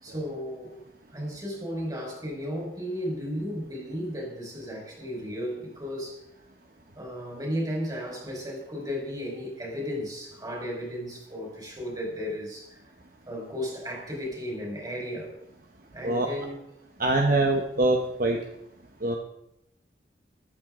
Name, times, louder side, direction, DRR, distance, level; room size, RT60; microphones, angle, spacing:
voice 1, 0.0-0.8 1.1-6.2 6.9-12.8 13.3-15.3 15.9-16.5, equal, 25° right, -2 dB, 4.9 m, -34 dB
voice 2, 17.0-18.4 19.0-19.2, right 2 dB, 55° right, 2 dB, 1.1 m, -24 dB
14.5 x 12.5 x 3.9 m, 0.80 s
head